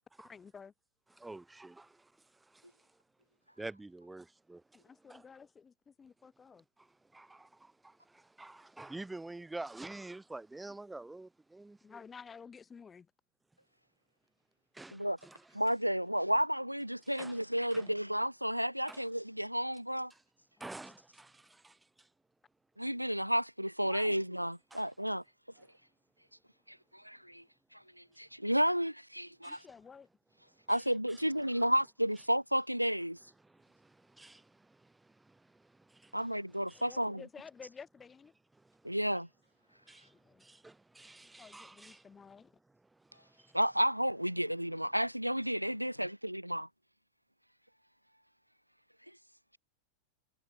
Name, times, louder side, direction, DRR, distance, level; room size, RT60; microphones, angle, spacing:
voice 1, 0.3-0.7 4.7-6.6 11.8-13.1 20.6-21.0 23.8-24.2 29.5-30.1 36.7-38.3 40.0-40.4 41.4-42.5, left 6 dB, 15° left, 3.1 m, -52 dB
voice 2, 1.2-1.9 3.6-4.6 5.1-5.2 7.1-12.0 14.7-15.4 17.2-17.3 17.7-17.9 18.9-19.0 20.6-21.7 24.7-24.8 29.4-29.6 33.8-33.9 34.2-34.4 35.3-35.4 35.9-36.1 36.7-36.8 39.9-40.1 40.4-42.0, right 2 dB, 5° right, 2.7 m, -47 dB
voice 3, 15.5-20.1 22.8-25.2 26.7-27.4 27.7-29.6 30.7-33.2 36.1-37.2 38.8-39.3 43.5-46.7, equal, 90° right, 1.3 m, -32 dB
figure-of-eight pair, 90°, 0 cm